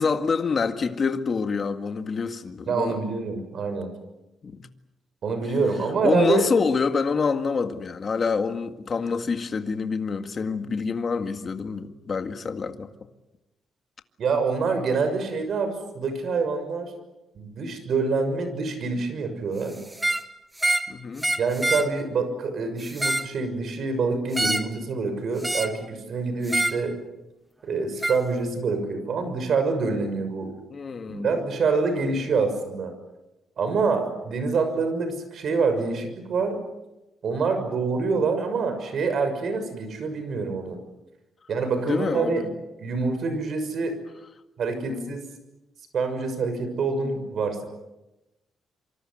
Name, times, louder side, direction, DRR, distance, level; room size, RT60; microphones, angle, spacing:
voice 1, 0.0-3.0 4.4-4.7 6.0-12.9 20.9-21.3 30.7-31.3 41.9-42.5 44.8-45.2, left 5 dB, 35° left, 1.9 m, -27 dB
voice 2, 2.7-3.9 5.2-6.5 14.2-16.9 17.3-19.8 21.4-27.0 27.6-30.5 31.1-32.9 33.6-36.6 37.2-40.8 41.5-42.4 42.8-44.0 44.6-45.3 45.9-47.6, right 4 dB, 55° right, 6.4 m, -26 dB
sound 1, 19.9-20.3 20.6-20.9 21.2-21.9 22.8-23.3 24.3-24.7 25.4-25.8 26.5-26.8 28.0-28.2, right 1 dB, 10° right, 1.3 m, -26 dB
27.0 x 25.0 x 7.9 m
cardioid pair, 140°, 0 cm